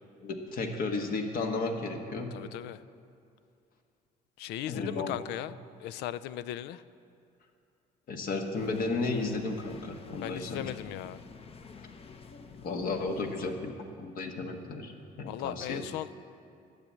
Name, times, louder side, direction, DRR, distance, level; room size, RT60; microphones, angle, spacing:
voice 1, 0.2-2.3 4.7-5.1 8.1-10.7 12.6-14.9 15.2-15.8, left 3 dB, 60° left, 4 dB, 1.5 m, -33 dB
voice 2, 2.2-2.8 4.4-5.5 5.8-6.8 10.2-11.2 15.3-16.2, left 13 dB, 85° left, 16 dB, 0.4 m, -37 dB
sound 1, 8.5-13.5, left 5 dB, 35° left, 0.8 m, -50 dB
12.0 x 8.6 x 7.5 m, 2.5 s
cardioid pair, 110°, 17 cm